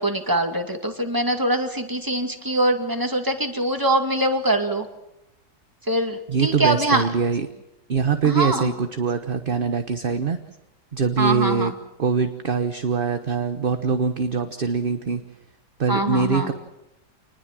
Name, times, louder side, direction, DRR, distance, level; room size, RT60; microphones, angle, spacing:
voice 1, 0.0-4.9 5.9-7.1 8.2-8.7 11.2-11.7 15.9-16.5, right 1 dB, 10° right, 5 dB, 2.3 m, -23 dB
voice 2, 6.3-7.5 7.9-10.4 10.9-11.7 12.0-15.2 15.8-16.5, right 5 dB, 40° right, 8 dB, 1.1 m, -23 dB
27.5 x 20.5 x 7.5 m, 0.87 s
omnidirectional pair, 1.7 m